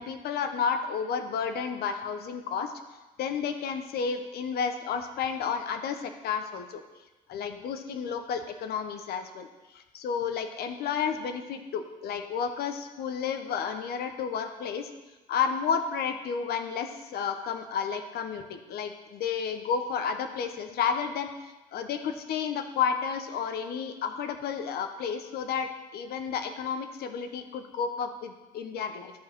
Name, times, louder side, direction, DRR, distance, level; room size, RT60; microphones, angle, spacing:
voice 1, 0.0-2.7 3.2-6.8 7.3-9.5 9.7-14.9 15.3-29.1, left 6 dB, 70° left, 7 dB, 1.1 m, -31 dB
12.5 x 4.8 x 6.0 m, 1.1 s
cardioid pair, 110°, 17 cm